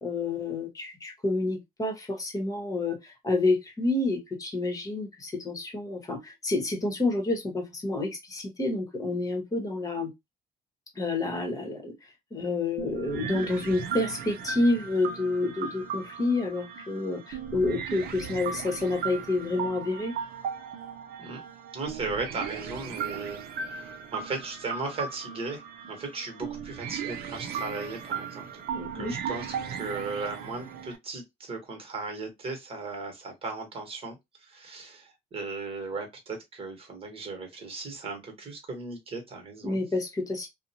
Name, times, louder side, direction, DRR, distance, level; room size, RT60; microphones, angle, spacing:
voice 1, 0.0-10.1 10.9-11.9 12.3-20.1 28.7-29.1 39.6-40.5, left 2 dB, 20° left, 1.1 m, -29 dB
sound 1, 12.8-31.0, right 7 dB, 65° right, 0.6 m, -37 dB
voice 2, 21.7-28.5 28.9-39.8, right 3 dB, 35° right, 1.3 m, -37 dB
2.5 x 2.1 x 2.7 m
cardioid pair, 110°, 17 cm